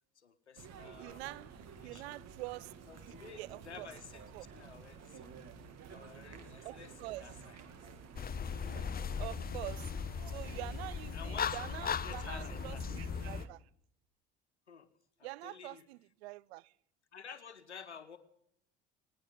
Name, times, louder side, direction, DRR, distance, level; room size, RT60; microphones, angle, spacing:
voice 1, 0.1-1.2 1.8-2.2 2.9-5.3 5.9-7.9 9.2-9.4 11.1-12.8 14.7-14.9 15.2-15.9 17.1-18.2, left 6 dB, 90° left, 1.2 m, -52 dB
sound 1, 0.6-13.5, right 6 dB, 50° right, 2.2 m, -52 dB
voice 2, 1.0-1.5 1.8-2.7 3.0-3.9 4.3-4.5 6.6-7.3 9.2-9.9 10.3-13.6 15.2-16.7, right 20 dB, 70° right, 0.5 m, -45 dB
sound 2, 8.2-13.5, left 7 dB, 30° left, 0.8 m, -38 dB
19.5 x 19.0 x 3.8 m
figure-of-eight pair, 60°, 33 cm